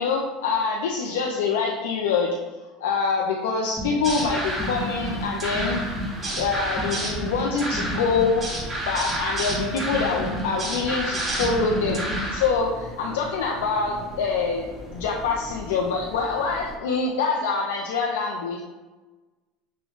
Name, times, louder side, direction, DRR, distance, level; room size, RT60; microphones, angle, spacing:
voice 1, 0.0-2.4 2.8-5.8 6.4-8.5 8.9-18.6, left 4 dB, 85° left, -1 dB, 0.5 m, -25 dB
sound 1, 3.8-12.5, right 1 dB, 20° right, 1.3 m, -29 dB
sound 2, 4.4-16.8, equal, 10° left, 1.1 m, -41 dB
6.2 x 2.2 x 3.6 m, 1.2 s
supercardioid pair, 100°, 0 cm